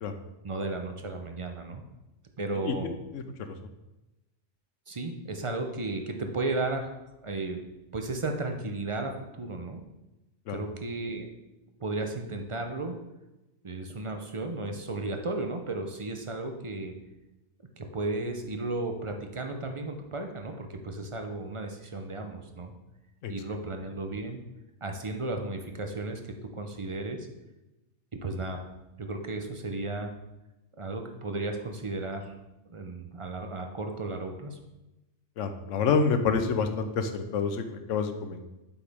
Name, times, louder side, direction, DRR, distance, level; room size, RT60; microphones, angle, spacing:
voice 1, 0.4-1.8 2.4-2.9 4.9-6.9 7.2-7.7 7.9-9.8 10.5-11.3 11.8-13.0 13.6-17.0 17.8-22.7 23.3-24.4 24.8-27.3 28.2-28.6 29.0-30.1 30.8-32.3 32.7-34.6, right 2 dB, 35° right, 4 dB, 0.6 m, -34 dB
voice 2, 2.6-3.6 10.5-10.6 23.2-23.3 35.4-38.5, left 5 dB, 85° left, 8 dB, 1.1 m, -28 dB
7.9 x 5.9 x 3.5 m, 0.99 s
omnidirectional pair, 1.3 m